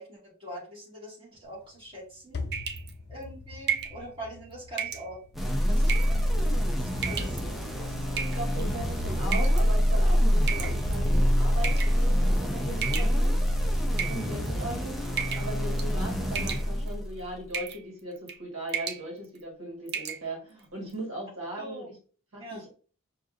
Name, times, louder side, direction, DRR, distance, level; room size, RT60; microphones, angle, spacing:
voice 1, 0.0-2.5 3.1-5.2 5.7-7.4 7.8-8.0 14.2-14.4 16.1-16.2 21.6-21.9 22.4-22.7, equal, 25° right, -6 dB, 1.9 m, -43 dB
sound 1, 1.4-12.8, left 3 dB, 50° left, 0.5 m, -46 dB
sound 2, 2.5-2.9 3.7-4.0 4.8-5.1 5.8-6.2 7.0-7.4 8.2-8.6 9.3-9.6 10.5-11.1 11.6-12.0 12.8-13.5 13.9-14.6 15.2-15.5 15.8-16.0 16.3-16.9 17.5-17.8 18.2-18.4 18.7-19.0 19.4-19.5 19.9-20.2, right 8 dB, 50° right, 0.5 m, -33 dB
sound 3, 5.3-17.3, equal, ahead, 0.6 m, -26 dB
voice 2, 8.3-13.3 13.9-14.9 15.4-21.9 22.3-22.7, right 1 dB, 80° right, -2 dB, 1.5 m, -38 dB
5.3 x 2.7 x 2.5 m, 0.40 s
head